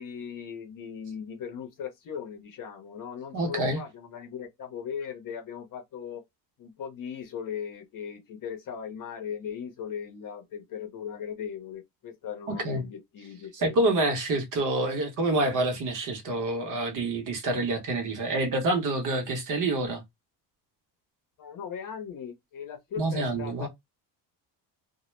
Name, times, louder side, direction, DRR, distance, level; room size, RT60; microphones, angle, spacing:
voice 1, 0.0-6.2 6.6-13.7 21.4-23.7, left 7 dB, 45° left, 0.7 m, -38 dB
voice 2, 3.3-3.8 12.5-12.8 13.5-20.0 23.0-23.7, right 2 dB, 45° right, 0.8 m, -27 dB
2.2 x 2.0 x 3.0 m
cardioid pair, 140°, 45 cm